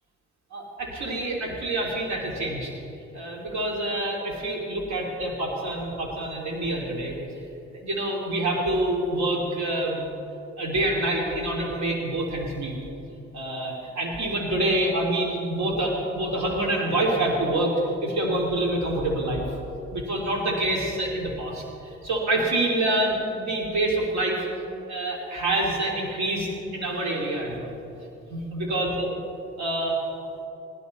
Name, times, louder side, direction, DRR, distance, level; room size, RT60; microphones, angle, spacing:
voice 1, 0.5-2.7 3.1-7.1 7.7-10.0 10.6-12.7 13.3-17.8 18.0-19.5 19.9-21.6 22.0-24.4 24.9-27.8 28.3-29.1 29.6-30.0, right 1 dB, 65° right, -2 dB, 2.7 m, -26 dB
19.0 x 11.5 x 4.1 m, 2.8 s
cardioid pair, 90°, 30 cm